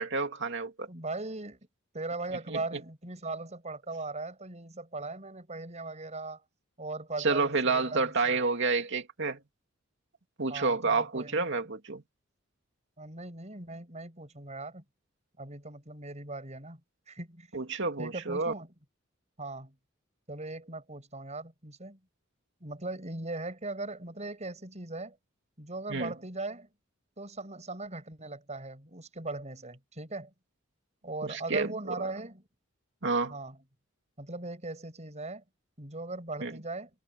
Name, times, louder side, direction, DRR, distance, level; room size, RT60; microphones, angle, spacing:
voice 1, 0.0-0.9 2.5-2.6 7.2-9.4 10.4-12.0 17.5-18.5 25.9-26.1 31.2-32.1 33.0-33.3 36.4-36.5, right 4 dB, 60° right, 2.7 m, -29 dB
voice 2, 0.9-1.6 1.9-6.4 6.8-8.4 10.5-11.5 13.0-14.8 15.4-16.8 17.1-17.5 18.0-18.7 19.4-19.7 20.3-22.0 22.6-25.2 25.6-26.7 27.2-30.3 31.0-32.4 33.3-33.6 34.2-35.4 35.8-36.9, right 2 dB, 35° right, 6.7 m, -39 dB
head